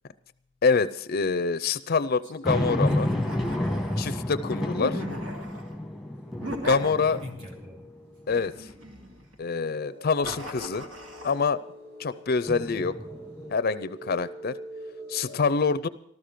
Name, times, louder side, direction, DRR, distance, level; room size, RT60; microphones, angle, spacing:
voice 1, 0.6-3.1 4.0-5.0 6.6-7.2 8.3-8.7 9.4-10.8 11.2-11.6 12.0-13.0 13.5-14.6 15.1-15.9, left 4 dB, 50° left, 15 dB, 0.5 m, -26 dB
sound 1, 2.4-8.0 8.5-8.6 12.5-13.5, left 1 dB, ahead, 1.1 m, -30 dB
voice 2, 2.5-3.5 3.8-4.2 7.0-7.8, left 2 dB, 35° right, 1 dB, 3.1 m, -40 dB
Evil Laughs Demonic Echos, 2.8-4.2 4.8-5.7 6.4-7.5 8.3-9.4 10.2-11.4, equal, 80° right, 2.6 m, -38 dB
sound 2, 5.7-9.2 9.6-15.4, right 1 dB, 55° right, 6.7 m, -45 dB
14.0 x 13.0 x 5.1 m, 0.71 s
head